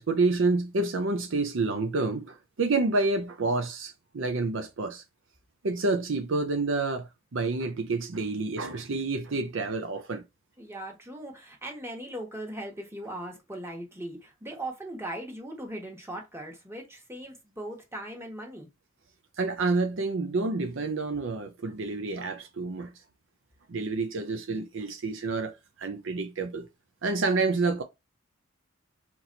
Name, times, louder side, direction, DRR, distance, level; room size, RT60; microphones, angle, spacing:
voice 1, 0.0-5.0 5.6-10.2 19.4-22.9 23.7-26.7 27.0-27.8, right 3 dB, 65° right, 0.6 m, -28 dB
voice 2, 10.6-18.7, right 1 dB, 10° right, 1.5 m, -39 dB
4.2 x 3.0 x 3.9 m
head